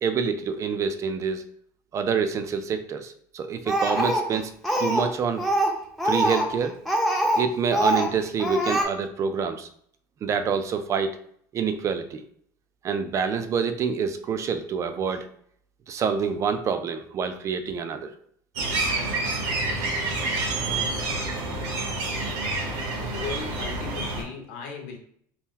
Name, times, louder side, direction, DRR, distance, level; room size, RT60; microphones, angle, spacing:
voice 1, 0.0-1.4 1.9-4.5 4.8-5.5 6.0-6.8 7.4-9.7 10.2-11.2 11.5-12.2 12.8-15.3 15.9-18.1, right 6 dB, 35° right, 9 dB, 0.4 m, -27 dB
Speech, 3.7-5.1 5.4-7.5 7.7-8.1 8.4-8.8, right 1 dB, ahead, 0.7 m, -24 dB
sound 1, 18.6-24.2, right 2 dB, 80° right, 0.9 m, -28 dB
voice 2, 23.1-25.0, left 6 dB, 75° left, 2 dB, 0.9 m, -36 dB
2.8 x 2.2 x 3.7 m, 0.64 s
supercardioid pair, 105°, 9 cm